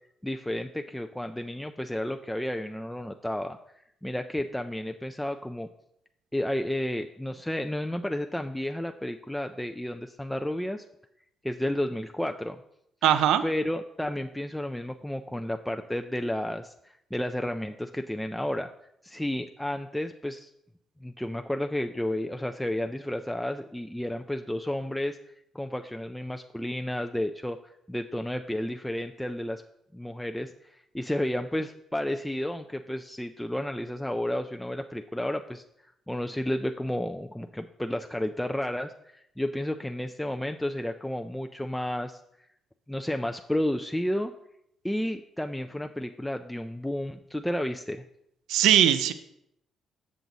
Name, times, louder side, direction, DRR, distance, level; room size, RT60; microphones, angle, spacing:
voice 1, 0.2-3.6 4.0-5.7 6.3-10.8 11.4-12.6 13.4-16.7 17.1-18.7 19.0-20.5 21.0-25.2 25.5-29.6 29.9-42.2 42.9-44.3 44.8-48.0, left 1 dB, 5° left, 5 dB, 0.3 m, -32 dB
voice 2, 13.0-13.4 48.5-49.1, right 10 dB, 90° right, 11 dB, 0.4 m, -20 dB
6.9 x 6.2 x 3.9 m, 0.77 s
cardioid pair, 90°, 0 cm